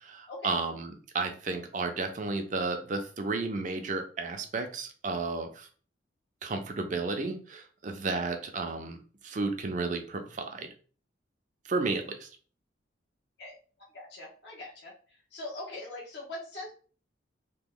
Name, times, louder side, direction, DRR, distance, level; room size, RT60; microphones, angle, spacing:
voice 1, 0.0-5.7 6.4-9.0 9.2-10.7 11.7-12.3, right 3 dB, 40° right, 6 dB, 0.5 m, -32 dB
voice 2, 13.9-14.9 15.3-16.7, left 2 dB, 60° left, -5 dB, 1.0 m, -41 dB
3.0 x 2.2 x 3.7 m, 0.40 s
head